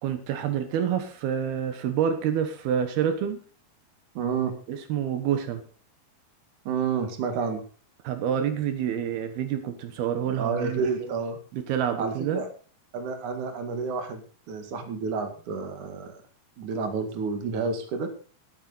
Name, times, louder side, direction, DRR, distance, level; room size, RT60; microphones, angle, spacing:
voice 1, 0.0-3.4 4.7-5.6 8.0-11.1 11.5-12.4, right 9 dB, 85° right, 8 dB, 3.2 m, -28 dB
voice 2, 4.1-4.5 6.6-7.6 10.4-11.4 12.0-12.5 12.9-14.2 14.5-16.2 16.6-18.1, right 5 dB, 55° right, 6 dB, 3.3 m, -30 dB
13.0 x 13.0 x 4.1 m, 0.39 s
omnidirectional pair, 4.4 m